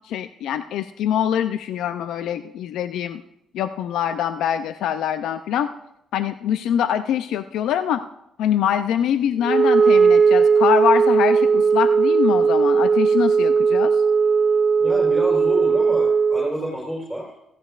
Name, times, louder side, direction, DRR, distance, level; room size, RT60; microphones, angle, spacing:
voice 1, 0.1-3.2 3.5-5.7 6.1-8.1 8.4-13.9, left 9 dB, 80° left, 11 dB, 0.4 m, -24 dB
Wind instrument woodwind instrument, 9.4-16.6, right 5 dB, 40° right, 0.3 m, -17 dB
voice 2, 14.8-17.3, equal, 5° left, -3 dB, 4.0 m, -28 dB
16.5 x 14.5 x 2.4 m, 0.83 s
cardioid pair, 90°, 0 cm